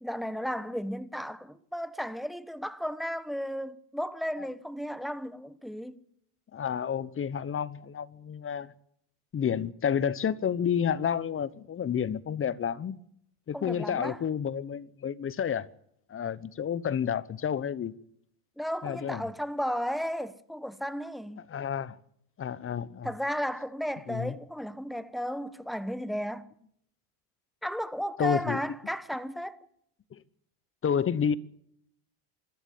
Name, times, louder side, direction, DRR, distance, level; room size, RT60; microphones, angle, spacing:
voice 1, 0.0-6.0 13.5-14.2 18.6-21.4 23.0-26.5 27.6-29.6, equal, ahead, 1.2 m, -34 dB
voice 2, 6.5-8.7 9.3-13.0 13.5-15.7 16.1-17.9 18.8-19.3 21.5-22.0 22.4-23.1 24.1-24.3 28.2-28.6 30.1-30.2 30.8-31.4, left 8 dB, 30° left, 1.1 m, -30 dB
25.0 x 13.5 x 8.6 m
supercardioid pair, 100°, 46 cm